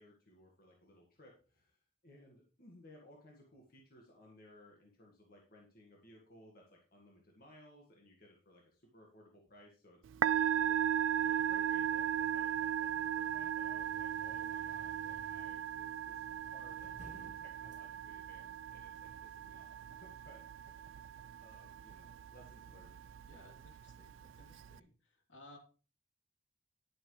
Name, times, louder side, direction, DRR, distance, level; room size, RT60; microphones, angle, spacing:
voice 1, 0.0-10.0 10.3-20.4 20.9-23.0, left 1 dB, 50° left, -1 dB, 1.8 m, -60 dB
Musical instrument, 10.0-24.8, right 9 dB, 75° right, 0.3 m, -37 dB
sound 1, 13.8-23.7, equal, 40° right, 1.1 m, -61 dB
voice 2, 23.2-24.9 25.3-25.6, left 1 dB, 70° left, 1 dB, 3.0 m, -58 dB
11.0 x 8.7 x 3.2 m, 0.37 s
head